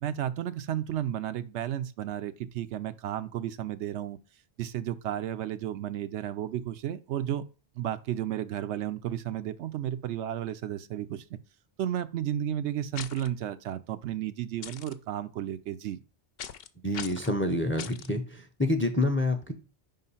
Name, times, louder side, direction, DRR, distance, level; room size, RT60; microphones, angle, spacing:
voice 1, 0.0-4.2 4.6-7.4 7.8-11.4 11.8-16.0, right 11 dB, 80° right, 0.9 m, -33 dB
sound 1, 12.9-13.3 14.6-14.9 16.4-16.7 16.9-17.3 17.8-18.1, left 9 dB, 65° left, 0.7 m, -40 dB
voice 2, 16.8-19.5, left 1 dB, 15° left, 0.5 m, -27 dB
5.3 x 3.7 x 5.5 m
omnidirectional pair, 1.2 m